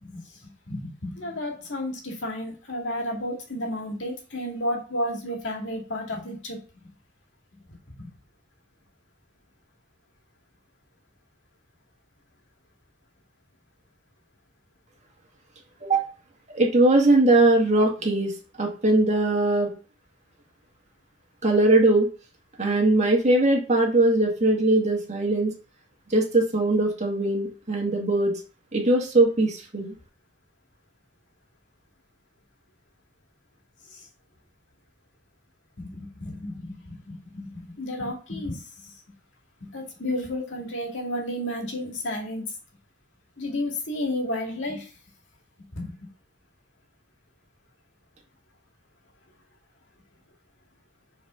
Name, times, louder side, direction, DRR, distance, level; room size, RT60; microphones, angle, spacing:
voice 1, 0.7-6.9 8.0-8.1 33.9-34.0 35.8-38.6 39.6-42.4 43.4-44.9 45.7-45.9, left 1 dB, 70° left, 0 dB, 2.4 m, -32 dB
voice 2, 16.5-18.3 18.6-19.7 21.4-22.1 22.6-25.5 26.1-28.3 28.7-29.9, right 2 dB, 40° right, 0 dB, 2.0 m, -20 dB
6.1 x 4.7 x 5.7 m, 0.36 s
head